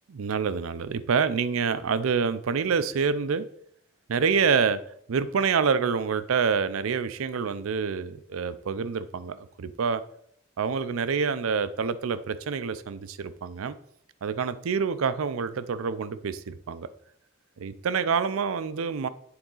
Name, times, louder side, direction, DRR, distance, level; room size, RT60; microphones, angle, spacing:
voice 1, 0.1-3.5 4.1-4.8 5.1-10.0 10.6-13.8 14.2-16.9 17.6-19.1, right 6 dB, 75° right, 14 dB, 0.4 m, -27 dB
8.6 x 3.9 x 3.8 m, 0.68 s
head